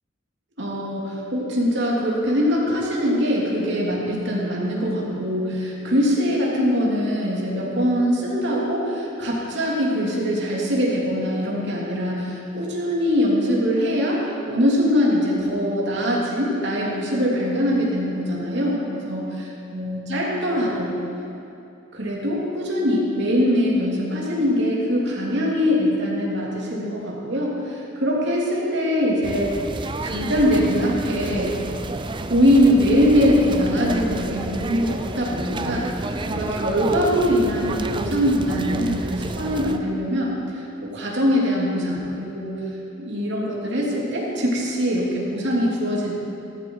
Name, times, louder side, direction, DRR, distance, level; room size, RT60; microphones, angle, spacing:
voice 1, 0.6-19.3 19.7-20.9 21.9-31.5 32.2-35.9 36.2-40.6 40.9-42.6 43.0-46.1, equal, 60° right, -4 dB, 3.0 m, -22 dB
sound 1, 29.2-39.8, right 2 dB, 25° right, 0.5 m, -30 dB
15.5 x 13.5 x 4.8 m, 2.8 s
head